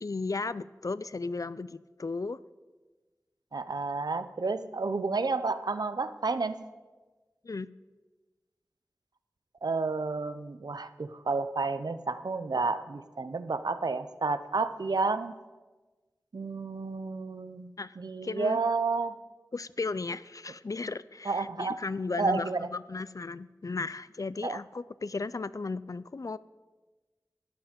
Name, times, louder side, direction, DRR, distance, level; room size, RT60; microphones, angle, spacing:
voice 1, 0.0-2.4 7.4-7.7 17.8-18.0 18.2-18.6 19.5-26.4, left 3 dB, 55° left, 17 dB, 0.4 m, -35 dB
voice 2, 3.5-6.6 9.6-15.4 16.3-19.2 21.3-21.8 22.2-22.6 24.4-24.6, right 4 dB, 85° right, 12 dB, 0.5 m, -31 dB
12.0 x 9.5 x 5.1 m, 1.3 s
wide cardioid pair, 45°, 7 cm